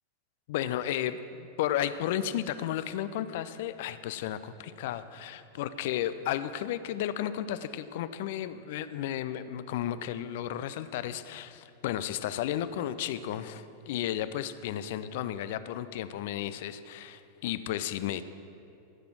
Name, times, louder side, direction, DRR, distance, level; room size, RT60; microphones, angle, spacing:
voice 1, 0.5-18.2, left 11 dB, 50° left, 13 dB, 0.5 m, -33 dB
15.5 x 6.8 x 6.0 m, 2.7 s
figure-of-eight pair, 90°, 0 cm